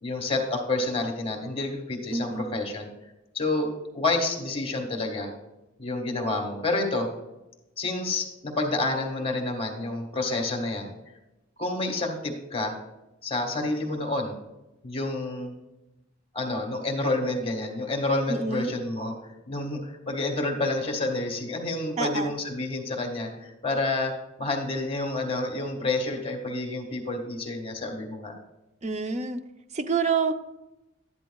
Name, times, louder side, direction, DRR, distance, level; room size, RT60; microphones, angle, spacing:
voice 1, 0.0-2.9 3.3-3.7 3.9-5.3 5.8-7.1 7.8-10.9 11.6-12.7 13.2-14.3 14.8-15.5 16.3-19.1 19.5-24.1 24.4-28.4, left 2 dB, 30° left, 2 dB, 1.7 m, -29 dB
voice 2, 2.1-2.5 18.3-18.7 22.0-22.3 28.8-29.4 29.7-30.3, right 4 dB, 35° right, 8 dB, 0.6 m, -27 dB
12.0 x 10.0 x 2.3 m, 0.96 s
head